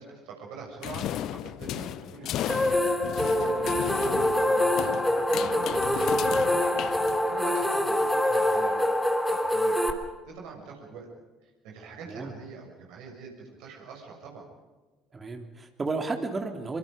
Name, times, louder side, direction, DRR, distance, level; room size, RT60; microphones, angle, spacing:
voice 1, 0.0-2.7 3.2-4.9 5.3-6.9 7.3-9.8 10.3-11.1 11.4-14.5, right 5 dB, 55° right, 0 dB, 6.7 m, -43 dB
sound 1, 0.8-7.6, left 12 dB, 50° left, 0.8 m, -35 dB
sound 2, 2.5-9.9, left 1 dB, 5° left, 3.4 m, -25 dB
voice 2, 15.1-16.8, right 3 dB, 25° right, 5 dB, 3.2 m, -32 dB
27.5 x 25.0 x 5.2 m, 1.2 s
figure-of-eight pair, 55°, 0 cm